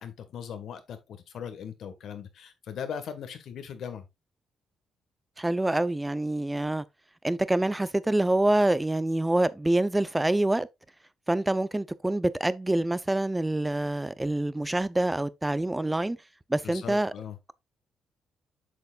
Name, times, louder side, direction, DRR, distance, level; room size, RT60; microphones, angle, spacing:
voice 1, 0.0-4.0 16.6-17.4, left 7 dB, 70° left, 1.6 m, -39 dB
voice 2, 5.4-6.8 7.2-10.7 11.3-16.2 16.5-17.1, right 1 dB, 15° right, 0.6 m, -26 dB
8.2 x 6.6 x 2.5 m
cardioid pair, 80°, 0 cm